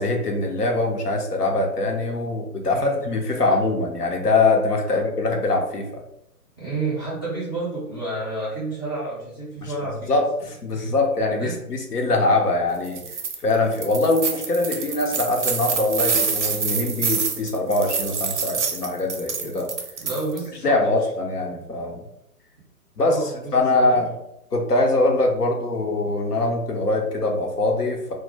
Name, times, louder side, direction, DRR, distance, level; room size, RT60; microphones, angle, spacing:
voice 1, 0.0-6.0 9.6-9.7 10.1-13.0 13.4-19.7 20.6-22.0 23.0-24.1 24.5-28.1, left 2 dB, 80° left, 2 dB, 0.7 m, -23 dB
voice 2, 2.7-3.1 3.4-3.6 4.9-5.0 6.6-10.2 10.7-10.9 11.4-11.6 11.9-12.0 19.4-19.5 20.0-21.0 23.0-24.0, right 2 dB, 15° left, -11 dB, 0.4 m, -30 dB
sound 1, 12.8-13.4 13.7-20.5, right 5 dB, 50° right, 0.5 m, -26 dB
2.1 x 2.1 x 3.2 m, 0.81 s
figure-of-eight pair, 125°, 45 cm